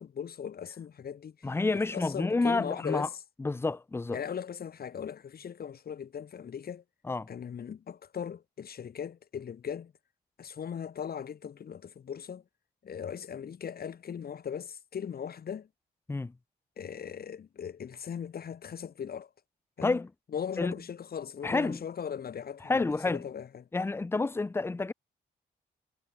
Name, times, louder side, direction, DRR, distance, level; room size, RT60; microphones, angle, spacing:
voice 1, 0.0-1.5 1.7-3.2 4.1-6.8 7.3-9.9 10.4-12.4 12.8-15.7 16.8-19.3 19.8-20.0 20.3-23.7, left 8 dB, 50° left, 1.0 m, -39 dB
voice 2, 1.4-3.1 3.4-4.2 7.1-7.3 16.1-16.3 19.8-20.1 20.6-20.7 21.4-21.8 22.7-23.2 23.7-24.9, left 3 dB, 10° left, 0.4 m, -29 dB
supercardioid pair, 50°, 19 cm